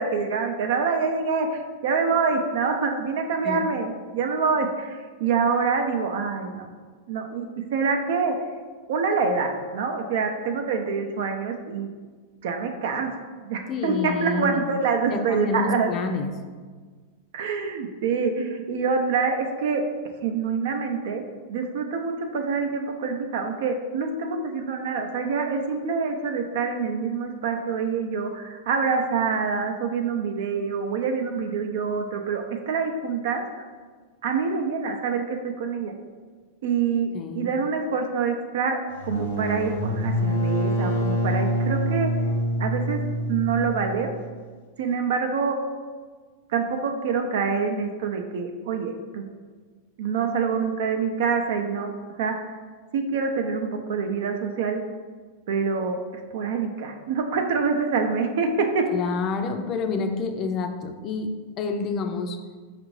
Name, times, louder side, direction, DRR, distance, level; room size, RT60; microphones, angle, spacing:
voice 1, 0.0-6.7 7.1-7.5 7.7-8.4 8.9-11.9 12.4-15.9 17.3-19.8 20.2-21.2 21.5-33.6 34.2-35.9 36.6-37.1 37.4-42.1 42.6-43.0 43.3-44.1 44.8-45.6 46.5-49.3 50.0-51.9 52.2-52.5 52.9-54.8 55.5-58.9, right 5 dB, 70° right, 4 dB, 0.4 m, -26 dB
voice 2, 13.7-14.6 15.1-16.3 37.1-37.5 58.9-61.3 61.6-62.4, left 4 dB, 40° left, 5 dB, 0.4 m, -28 dB
sound 1, 38.9-44.4, equal, 75° left, 0.9 m, -26 dB
5.0 x 2.5 x 3.1 m, 1.5 s
hypercardioid pair, 120°, 0 cm